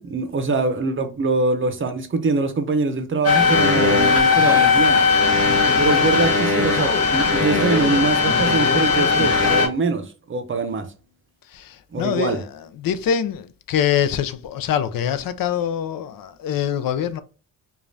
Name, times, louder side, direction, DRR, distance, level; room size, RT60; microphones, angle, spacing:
voice 1, 0.0-5.0 5.8-10.9 11.9-12.4, right 3 dB, 35° right, 0.6 m, -23 dB
sound 1, 3.2-9.7, left 4 dB, 40° left, 1.1 m, -18 dB
voice 2, 11.5-17.2, left 9 dB, 80° left, 0.5 m, -24 dB
5.0 x 2.4 x 2.6 m
wide cardioid pair, 140°, 34 cm